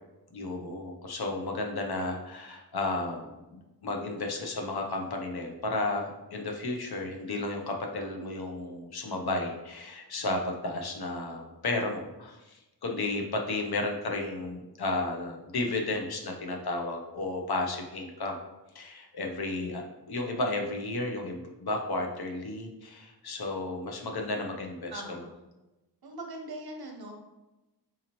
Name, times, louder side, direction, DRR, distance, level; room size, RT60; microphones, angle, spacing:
voice 1, 0.3-18.4 18.7-19.8 20.1-25.0, left 2 dB, 65° left, 2 dB, 0.7 m, -33 dB
voice 2, 24.9-25.3 26.0-27.1, right 2 dB, 65° right, 1 dB, 0.8 m, -41 dB
3.8 x 2.9 x 2.9 m, 1.0 s
wide cardioid pair, 70°, 41 cm